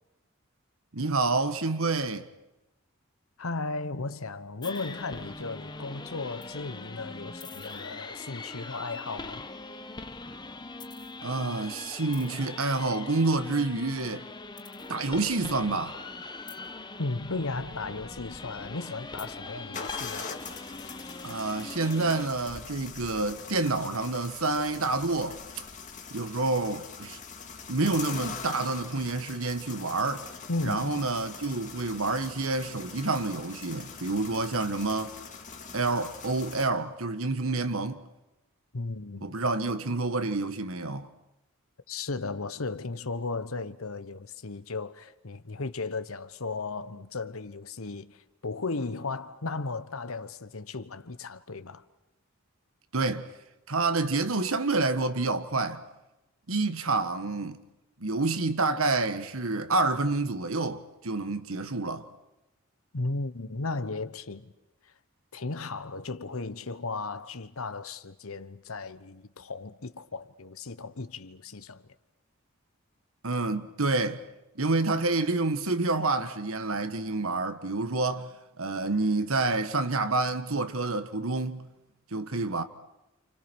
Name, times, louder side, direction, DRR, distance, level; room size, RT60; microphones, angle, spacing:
voice 1, 0.9-2.2 11.2-14.2 14.9-16.0 21.2-25.4 26.1-27.2 27.7-30.3 30.6-35.2 35.7-38.0 39.2-41.1 52.9-53.3 53.7-55.8 56.5-57.6 58.0-62.0 73.2-74.2 74.5-78.3 78.6-81.7 82.1-82.6, right 3 dB, 70° right, 1.5 m, -28 dB
voice 2, 3.4-9.5 17.0-20.3 30.5-31.1 38.7-39.4 41.9-51.8 62.9-64.5 65.3-71.9, left 3 dB, 70° left, 1.1 m, -35 dB
sound 1, 4.6-22.3, left 3 dB, 20° left, 1.1 m, -42 dB
sound 2, 17.2-19.1 19.7-36.7, left 5 dB, 35° left, 2.2 m, -43 dB
29.0 x 28.5 x 6.3 m
head